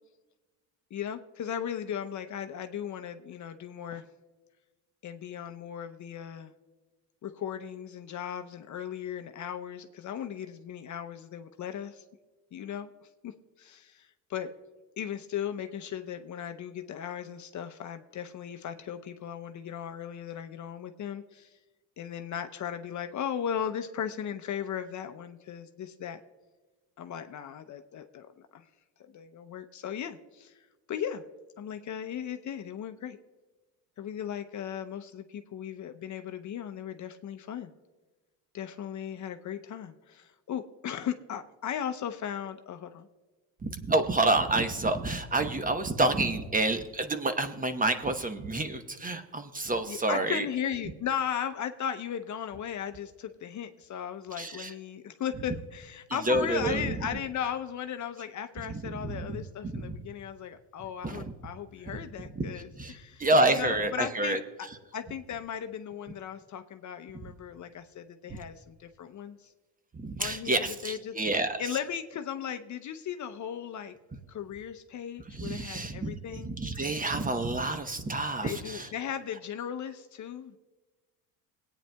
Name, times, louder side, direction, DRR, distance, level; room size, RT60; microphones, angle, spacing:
voice 1, 0.9-4.0 5.0-6.5 7.2-12.0 12.5-14.5 15.0-21.6 22.0-26.2 27.0-28.7 29.0-31.2 31.6-33.2 34.0-37.7 38.5-43.1 49.9-64.7 64.9-69.5 70.2-71.1 71.6-74.0 74.3-76.5 78.4-80.6, left 9 dB, 45° left, 8 dB, 0.7 m, -37 dB
voice 2, 43.6-50.4 54.4-54.7 56.3-56.9 58.8-59.2 59.7-60.0 61.0-61.2 62.4-62.5 62.8-62.9 63.2-64.4 69.9-71.6 75.3-78.9, right 2 dB, 20° right, 8 dB, 0.9 m, -28 dB
21.5 x 9.0 x 2.3 m, 1.2 s
supercardioid pair, 75°, 43 cm